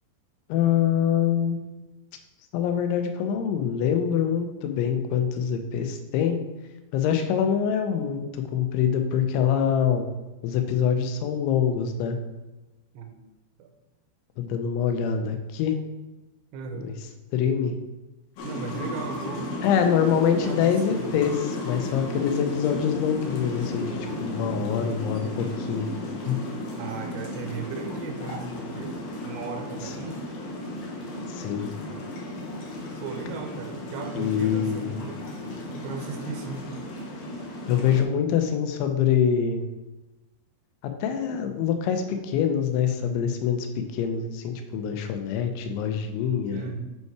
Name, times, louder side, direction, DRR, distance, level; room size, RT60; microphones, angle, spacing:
voice 1, 0.5-1.6 2.5-6.4 6.9-10.1 10.4-12.2 14.4-15.8 16.7-16.9 17.3-17.8 19.6-25.9 26.3-26.4 29.8-29.9 31.3-31.7 34.2-34.9 37.7-39.7 40.8-46.7, left 8 dB, 85° left, 6 dB, 3.2 m, -25 dB
voice 2, 12.9-13.3 13.6-13.7 16.5-16.9 18.4-19.5 20.3-21.1 26.8-29.0 29.2-30.2 33.0-35.2 35.5-36.7 46.5-46.8, right 5 dB, 80° right, 4 dB, 3.2 m, -36 dB
sound 1, 18.4-38.0, left 1 dB, 65° left, 2.6 m, -34 dB
7.8 x 5.5 x 4.7 m, 1.1 s
omnidirectional pair, 5.3 m